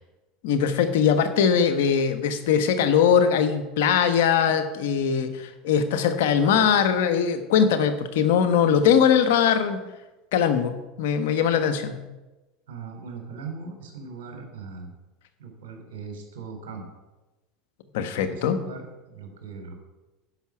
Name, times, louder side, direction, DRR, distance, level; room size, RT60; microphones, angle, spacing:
voice 1, 0.4-9.8 10.3-10.7 11.0-12.0 17.9-18.6, left 7 dB, 75° left, 9 dB, 1.2 m, -21 dB
voice 2, 12.7-14.9 15.4-16.9 18.2-19.7, right 5 dB, 80° right, 3 dB, 3.1 m, -39 dB
10.5 x 5.8 x 7.3 m, 1.1 s
supercardioid pair, 100°, 0 cm